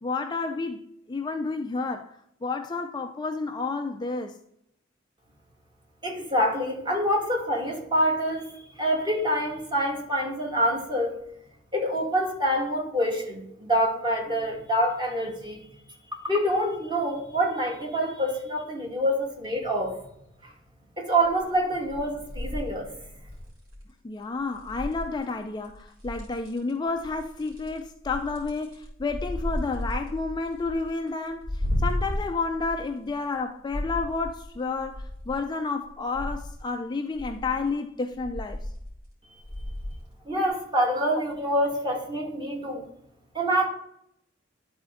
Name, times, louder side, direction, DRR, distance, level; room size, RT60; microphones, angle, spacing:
voice 1, 0.0-2.1 2.4-4.3 14.3-14.5 24.0-38.6 40.8-40.9, left 3 dB, 20° left, 0.3 m, -31 dB
voice 2, 6.0-8.5 8.8-11.1 11.7-15.6 16.2-19.9 21.0-22.9 40.3-42.8 43.3-43.7, equal, 20° right, 1.7 m, -26 dB
sound 1, 21.2-21.6 21.9-23.8 24.5-25.3 25.6-26.7 27.0-33.4 33.7-35.4 35.8-36.6 37.2-37.7 38.1-39.1 39.4-40.0 40.4-40.5, left 1 dB, 80° right, 3.4 m, -34 dB
12.0 x 4.3 x 3.7 m
head